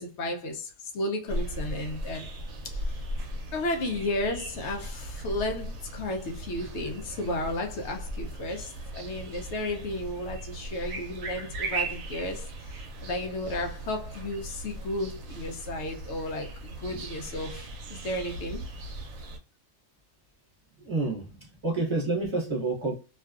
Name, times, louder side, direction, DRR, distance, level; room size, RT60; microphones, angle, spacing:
voice 1, 0.0-2.3 2.7-3.1 3.5-18.6, left 1 dB, 70° left, 0.8 m, -33 dB
sound 1, 1.3-19.4, right 1 dB, 90° right, 1.0 m, -38 dB
voice 2, 20.8-21.4 21.6-22.9, right 3 dB, 25° right, 0.8 m, -28 dB
2.5 x 2.3 x 2.3 m
omnidirectional pair, 1.3 m